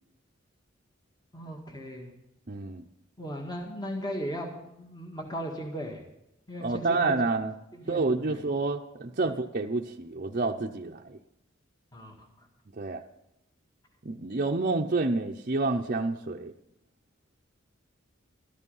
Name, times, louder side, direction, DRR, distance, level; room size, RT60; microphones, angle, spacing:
voice 1, 1.3-2.1 3.2-6.0 6.5-7.1 7.7-8.4 9.2-9.3 11.9-12.5, equal, 20° left, 2 dB, 1.8 m, -37 dB
voice 2, 2.5-2.9 6.6-7.5 7.9-11.2 12.7-13.0 14.0-16.5, right 3 dB, 45° right, 0 dB, 0.7 m, -29 dB
13.5 x 12.5 x 5.5 m, 0.84 s
head